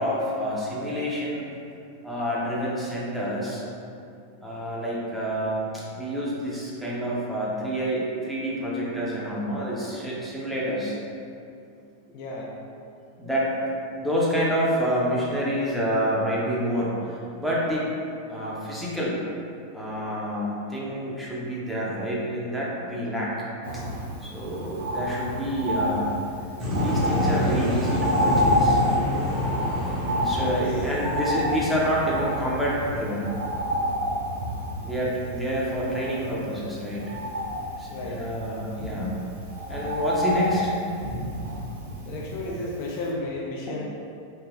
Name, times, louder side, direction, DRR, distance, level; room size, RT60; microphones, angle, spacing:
voice 1, 0.0-1.5 2.0-3.6 4.4-11.0 13.2-17.9 18.2-19.2 19.7-23.3 23.7-23.8 24.2-26.2 26.7-28.8 30.2-33.3 34.8-37.1 37.8-39.2 39.7-40.8 43.7-43.8, equal, ahead, -7 dB, 0.6 m, -28 dB
voice 2, 12.1-12.5 30.4-30.9 37.9-38.3 42.1-43.8, left 2 dB, 45° left, -3 dB, 0.3 m, -33 dB
Bird, 23.6-42.7 43.1-43.2, equal, 60° right, 0.6 m, -29 dB
sound 1, 26.6-32.5, left 1 dB, 30° right, 0.8 m, -28 dB
3.1 x 2.5 x 2.4 m, 2.6 s
figure-of-eight pair, 90°, 0 cm